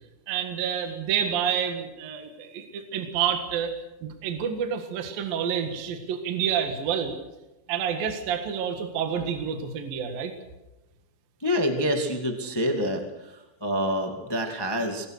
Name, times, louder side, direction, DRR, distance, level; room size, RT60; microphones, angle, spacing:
voice 1, 0.3-3.7 4.0-7.2 7.7-10.3, right 8 dB, 60° right, 6 dB, 3.2 m, -28 dB
voice 2, 11.4-15.0, equal, 40° left, 4 dB, 0.3 m, -27 dB
24.0 x 20.0 x 6.6 m, 0.98 s
omnidirectional pair, 5.1 m